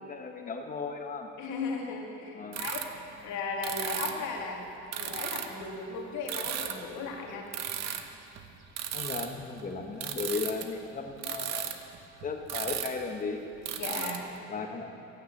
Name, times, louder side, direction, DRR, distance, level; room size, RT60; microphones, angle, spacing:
voice 1, 0.0-1.3 2.3-2.6 8.9-11.8 12.2-13.4 14.5-14.9, left 4 dB, 30° left, 4 dB, 1.2 m, -36 dB
voice 2, 1.4-4.7 4.9-7.5 13.8-14.3, left 4 dB, 80° left, 0 dB, 2.5 m, -36 dB
sound 1, 2.5-2.9 3.1-3.2 3.6-4.2 4.9-5.7 6.3-6.9 7.3-10.6 11.1-13.0 13.3-13.4 13.6-14.2, right 10 dB, 60° right, 1.0 m, -35 dB
16.5 x 9.5 x 7.2 m, 2.7 s
cardioid pair, 170°, 29 cm